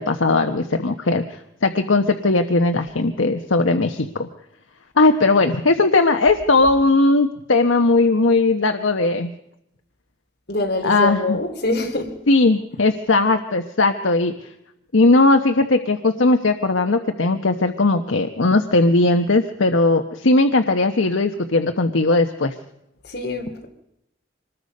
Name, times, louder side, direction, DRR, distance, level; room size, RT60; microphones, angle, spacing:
voice 1, 0.0-4.3 5.0-9.3 10.8-11.4 12.3-14.3 14.9-22.5, left 2 dB, 85° left, 6 dB, 1.0 m, -18 dB
voice 2, 10.5-12.1 23.1-23.7, left 2 dB, 55° left, 2 dB, 3.2 m, -24 dB
25.0 x 20.0 x 5.4 m, 0.81 s
head